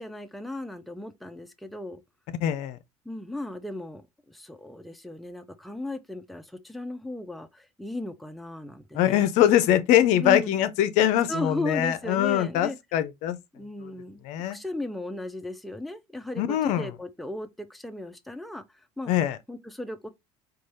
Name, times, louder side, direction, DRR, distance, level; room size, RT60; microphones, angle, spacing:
voice 1, 0.0-2.0 3.1-9.3 10.2-10.5 11.3-12.8 13.5-14.2 14.5-18.6 19.0-19.1 19.5-20.1, left 1 dB, ahead, 0.5 m, -36 dB
voice 2, 2.4-2.8 8.9-13.4 14.2-14.6 16.4-16.9 19.1-19.4, left 11 dB, 65° left, 0.5 m, -23 dB
4.0 x 2.3 x 3.1 m
supercardioid pair, 85°, 13 cm